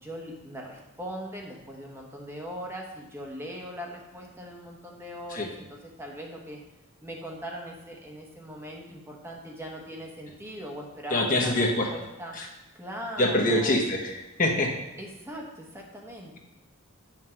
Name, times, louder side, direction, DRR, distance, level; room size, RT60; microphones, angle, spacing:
voice 1, 0.0-6.6 7.0-12.4 12.7-13.8 15.0-16.4, equal, 10° right, -1 dB, 1.1 m, -40 dB
voice 2, 11.1-11.9 12.3-12.5 13.2-14.1 14.4-14.7, left 1 dB, 40° left, 1 dB, 1.1 m, -24 dB
9.1 x 6.0 x 4.6 m, 1.0 s
head